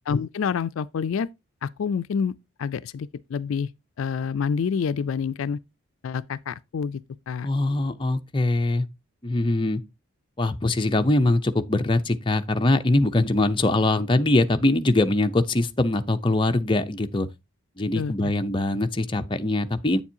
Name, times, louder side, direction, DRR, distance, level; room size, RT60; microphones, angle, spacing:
voice 1, 0.1-1.3 1.6-2.3 2.6-3.7 4.0-5.6 6.0-7.5 18.0-18.3, left 6 dB, 70° left, 0.4 m, -28 dB
voice 2, 7.4-8.9 9.2-9.8 10.4-17.3 17.8-20.0, left 2 dB, 25° left, 0.6 m, -22 dB
8.4 x 7.1 x 2.7 m
head